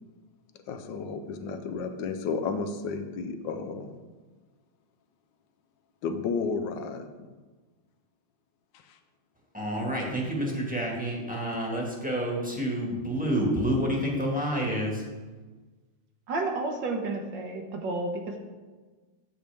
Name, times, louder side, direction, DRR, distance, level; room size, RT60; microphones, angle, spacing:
voice 1, 0.7-4.0 6.0-7.1 8.9-9.0 10.4-10.6, left 4 dB, 70° left, 8 dB, 1.3 m, -32 dB
voice 2, 9.5-15.0, equal, 5° right, -2 dB, 1.3 m, -28 dB
voice 3, 16.3-18.4, right 2 dB, 65° right, 2 dB, 1.7 m, -31 dB
9.5 x 7.7 x 3.4 m, 1.3 s
omnidirectional pair, 2.2 m